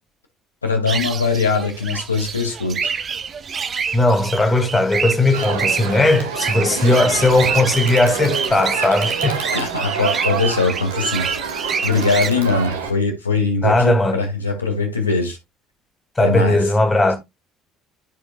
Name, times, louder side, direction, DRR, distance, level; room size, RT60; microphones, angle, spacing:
voice 1, 0.6-2.9 9.5-11.3 11.6-15.4 16.2-16.6, left 4 dB, 85° left, 2.1 m, -21 dB
sound 1, 0.9-12.3, right 6 dB, 40° right, 0.8 m, -27 dB
voice 2, 3.9-9.5 13.6-14.2 16.2-17.2, left 2 dB, 20° left, 2.4 m, -17 dB
Crowd, 5.3-12.9, right 5 dB, 75° right, 1.4 m, -27 dB
13.5 x 5.0 x 2.3 m
figure-of-eight pair, 55°, 0 cm